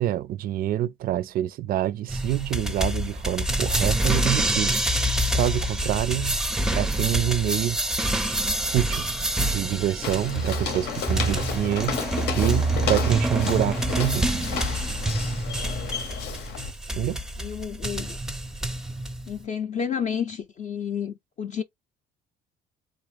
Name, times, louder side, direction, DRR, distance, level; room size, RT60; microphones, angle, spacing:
voice 1, 0.0-4.8 5.3-6.4 6.7-7.8 8.6-9.0 9.4-14.3 17.0-17.2, right 13 dB, 60° right, 0.4 m, -26 dB
sound 1, 2.1-19.4, right 1 dB, 5° right, 0.5 m, -27 dB
Walk footsteps, 10.0-16.7, left 6 dB, 80° left, 0.9 m, -32 dB
voice 2, 17.0-18.2 19.3-21.6, left 7 dB, 45° left, 0.5 m, -31 dB
3.6 x 2.5 x 3.1 m
cardioid pair, 110°, 17 cm